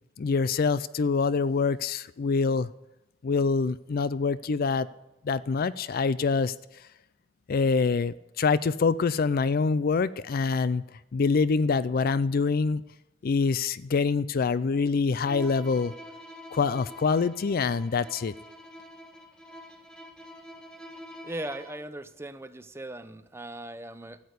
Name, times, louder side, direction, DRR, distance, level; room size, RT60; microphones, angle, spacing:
voice 1, 0.2-2.7 3.2-4.9 5.2-6.5 7.5-10.8 11.1-12.8 13.2-15.9 16.5-18.3, left 4 dB, 45° left, 17 dB, 0.4 m, -25 dB
Bowed string instrument, 15.2-21.9, left 1 dB, 5° left, 1.4 m, -46 dB
voice 2, 21.2-24.2, right 1 dB, 10° right, 11 dB, 0.6 m, -38 dB
13.5 x 8.6 x 8.1 m, 0.91 s
head